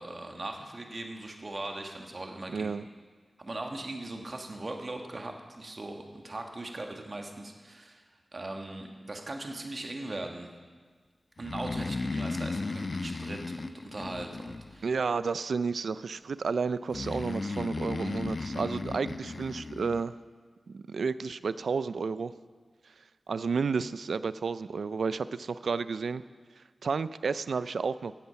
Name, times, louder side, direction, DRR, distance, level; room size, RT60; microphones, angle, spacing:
voice 1, 0.0-2.7 3.4-8.0 8.3-10.5 11.4-14.9, right 2 dB, 45° right, 3 dB, 1.6 m, -39 dB
voice 2, 2.5-2.8 14.8-20.2 20.7-22.3 23.3-26.2 26.8-28.1, right 5 dB, 85° right, 15 dB, 0.4 m, -31 dB
Breathing, 11.4-15.1 16.9-20.0, left 3 dB, 55° left, 0.5 m, -35 dB
14.5 x 8.3 x 5.8 m, 1.5 s
wide cardioid pair, 65°, 0 cm